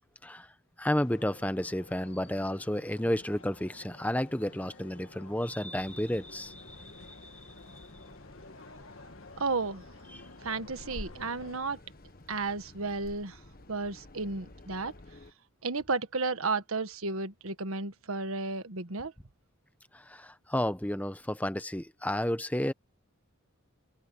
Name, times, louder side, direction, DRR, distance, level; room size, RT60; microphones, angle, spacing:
voice 1, 0.2-7.9 10.1-10.3 19.9-22.7, left 1 dB, 5° left, 1.0 m, -32 dB
sound 1, 1.0-11.6, left 2 dB, 65° left, 2.2 m, -52 dB
sound 2, 5.8-15.3, left 1 dB, 45° left, 1.6 m, -51 dB
voice 2, 9.4-9.8 10.4-11.8 12.3-13.4 13.7-14.9 15.6-19.1, right 3 dB, 80° right, 1.5 m, -33 dB
head